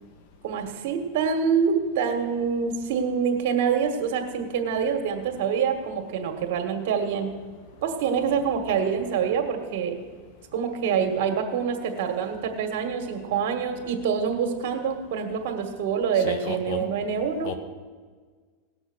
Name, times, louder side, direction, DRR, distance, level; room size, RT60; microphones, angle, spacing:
voice 1, 0.4-7.3 7.8-10.0 10.5-17.5, right 6 dB, 65° right, 5 dB, 1.8 m, -26 dB
voice 2, 16.1-16.8 17.4-17.6, left 6 dB, 60° left, 10 dB, 1.4 m, -34 dB
18.0 x 6.6 x 6.3 m, 1.5 s
supercardioid pair, 120°, 0 cm